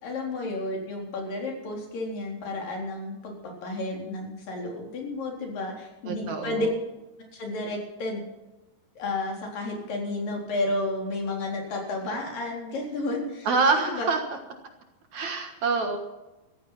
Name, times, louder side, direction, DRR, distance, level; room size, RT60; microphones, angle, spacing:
voice 1, 0.0-6.7 7.3-8.2 9.0-13.5 13.8-14.1, left 2 dB, 65° left, 0 dB, 5.5 m, -32 dB
voice 2, 6.1-6.7 13.5-14.2 15.1-16.0, right 4 dB, 60° right, 5 dB, 2.6 m, -26 dB
15.0 x 14.5 x 5.7 m, 1.0 s
omnidirectional pair, 4.2 m